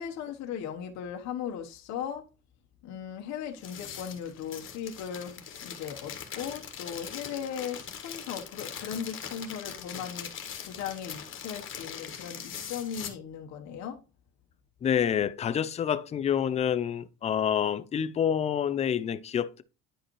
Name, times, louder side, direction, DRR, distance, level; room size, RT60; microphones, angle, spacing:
voice 1, 0.0-2.3 2.8-14.0, left 8 dB, 60° left, 1.1 m, -38 dB
sound 1, 3.5-13.1, left 8 dB, 40° left, 1.5 m, -41 dB
voice 2, 14.8-19.6, left 8 dB, 20° left, 0.4 m, -27 dB
10.0 x 5.2 x 3.0 m
cardioid pair, 150°, 31 cm